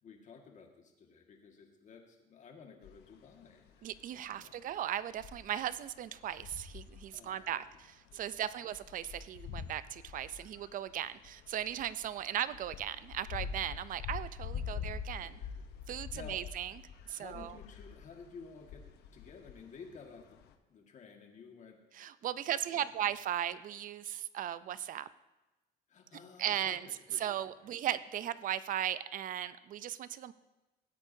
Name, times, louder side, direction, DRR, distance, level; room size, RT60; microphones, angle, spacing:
voice 1, 0.0-3.9 4.3-4.6 7.1-7.6 8.3-8.4 14.7-16.4 17.1-20.4 20.7-22.0 22.3-23.0 25.9-27.5, left 5 dB, 45° left, 2 dB, 1.8 m, -54 dB
sound 1, 2.8-3.2 3.5-4.8 5.1-20.5, left 7 dB, 75° left, 0.9 m, -45 dB
voice 2, 3.8-7.6 8.1-15.4 15.9-16.7 17.1-17.5 22.0-25.1 26.4-26.9 27.2-30.3, right 11 dB, 55° right, 16 dB, 0.5 m, -37 dB
17.0 x 8.3 x 2.7 m, 1.1 s
cardioid pair, 110°, 17 cm